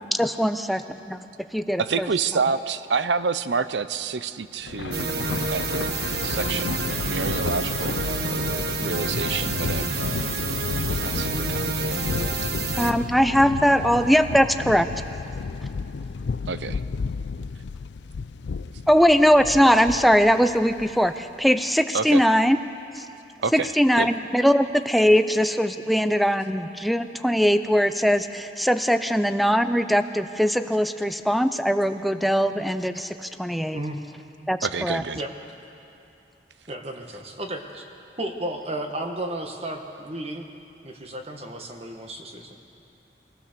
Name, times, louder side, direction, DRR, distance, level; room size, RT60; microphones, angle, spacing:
voice 1, 0.1-0.8 1.1-1.2 1.7-2.1 12.8-14.9 18.9-22.6 23.0-23.1 23.5-33.8 34.5-35.0, equal, ahead, 9 dB, 0.5 m, -21 dB
voice 2, 1.9-6.0 6.2-10.0 11.0-11.9 16.5-16.8 21.9-22.2 23.4-24.1 34.6-35.2, right 5 dB, 80° right, 13 dB, 0.6 m, -28 dB
Thunder, 4.6-21.2, left 4 dB, 80° left, 0.4 m, -31 dB
sound 1, 4.9-12.9, right 4 dB, 60° right, 1.1 m, -29 dB
voice 3, 36.7-37.8 38.2-40.5 40.8-42.6, right 1 dB, 35° right, 3 dB, 1.6 m, -33 dB
24.0 x 16.0 x 6.8 m, 2.8 s
head